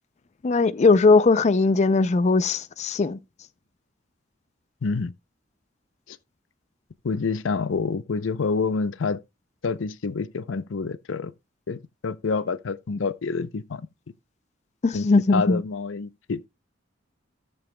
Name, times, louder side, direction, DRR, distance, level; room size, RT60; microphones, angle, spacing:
voice 1, 0.4-3.2 14.8-15.6, left 3 dB, 35° left, 0.4 m, -19 dB
voice 2, 4.8-5.1 6.1-6.2 7.0-9.2 9.6-11.3 11.7-13.9 14.9-15.1 15.3-16.5, left 4 dB, 90° left, 0.6 m, -27 dB
16.0 x 6.9 x 2.2 m
head